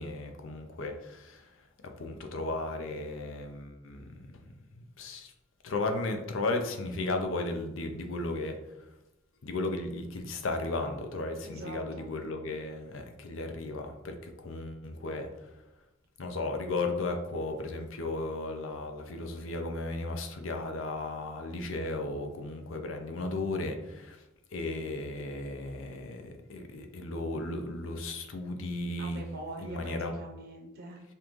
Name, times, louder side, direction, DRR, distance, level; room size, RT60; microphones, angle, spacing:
voice 1, 0.0-1.7 2.0-4.2 4.7-5.3 5.6-8.9 9.4-15.7 16.2-24.3 24.5-29.2 29.6-30.1, left 2 dB, 75° left, 5 dB, 0.6 m, -35 dB
voice 2, 11.4-12.0 29.0-31.0, right 2 dB, 50° right, -1 dB, 0.7 m, -43 dB
5.6 x 2.5 x 3.0 m, 0.92 s
head